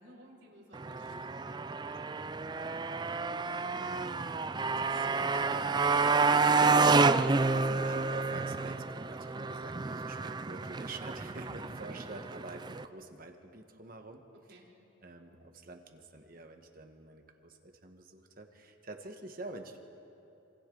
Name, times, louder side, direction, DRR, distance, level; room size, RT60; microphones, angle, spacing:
voice 1, 0.0-1.9 11.4-11.7 14.5-14.6, equal, 65° right, -5 dB, 5.1 m, -55 dB
Motorcycle, 0.7-12.8, right 4 dB, 20° right, 0.4 m, -29 dB
voice 2, 3.7-6.7 7.5-14.2 14.5-14.6 15.0-19.8, right 2 dB, 45° right, 4 dB, 1.4 m, -47 dB
26.5 x 26.5 x 3.9 m, 2.9 s
head